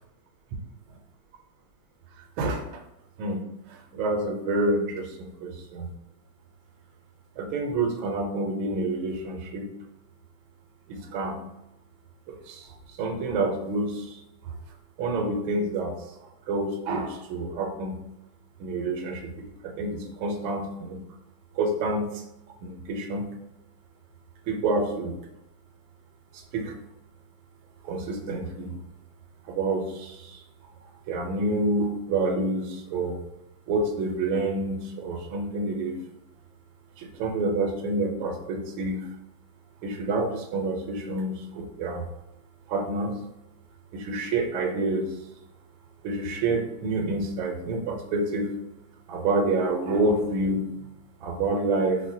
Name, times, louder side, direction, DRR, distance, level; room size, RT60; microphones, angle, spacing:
voice 1, 3.9-5.9 7.4-9.7 10.9-11.4 12.5-12.7 13.0-14.2 15.0-15.9 16.5-18.0 18.6-19.5 19.8-21.0 21.5-22.1 22.6-23.3 24.5-25.2 26.5-26.7 27.8-28.8 29.4-30.4 31.1-33.2 33.7-36.0 37.0-39.1 39.8-42.0 42.7-43.1 43.9-45.1 46.0-48.5 49.1-50.6 51.2-52.0, right 2 dB, 90° right, 2 dB, 1.4 m, -28 dB
4.2 x 2.1 x 2.6 m, 0.89 s
omnidirectional pair, 2.2 m